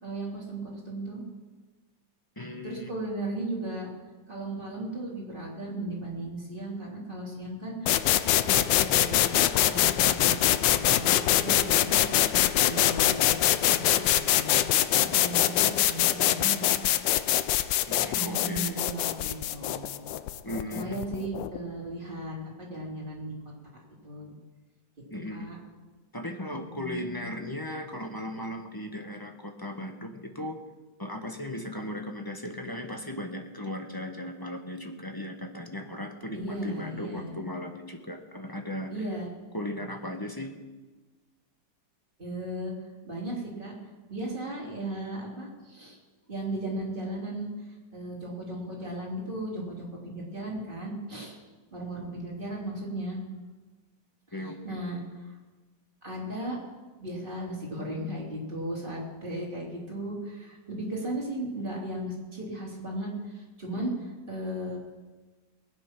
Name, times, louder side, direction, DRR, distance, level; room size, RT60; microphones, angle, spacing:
voice 1, 0.0-1.2 2.6-3.9 4.3-8.1 8.4-10.4 10.7-12.0 12.6-13.8 14.2-16.7 18.1-20.1 20.7-23.3 24.0-24.3 25.3-25.6 26.7-27.2 36.3-37.3 38.9-39.3 42.2-42.7 43.0-43.8 44.1-46.0 46.3-47.5 47.9-51.4 51.7-53.2 54.4-55.3 56.0-56.6 57.0-64.8, right 1 dB, 25° right, -3 dB, 3.6 m, -36 dB
voice 2, 2.4-2.9 17.9-18.8 20.4-21.0 25.1-25.5 26.1-30.6 31.0-38.9 39.5-40.5 54.3-54.8, left 1 dB, 15° left, 4 dB, 1.1 m, -37 dB
sound 1, 7.9-21.6, left 13 dB, 90° left, 1.3 m, -24 dB
20.5 x 9.1 x 6.0 m, 1.3 s
omnidirectional pair, 1.9 m